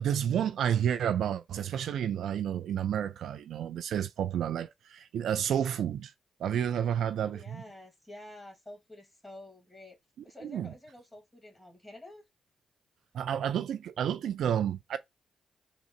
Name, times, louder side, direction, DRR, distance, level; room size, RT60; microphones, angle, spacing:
voice 1, 0.0-6.1 6.4-7.6 10.4-10.7 13.1-15.0, right 9 dB, 75° right, 0.4 m, -30 dB
voice 2, 7.2-10.0 10.2-12.2, left 1 dB, 10° left, 2.0 m, -49 dB
3.7 x 2.0 x 4.2 m
supercardioid pair, 50°, 0 cm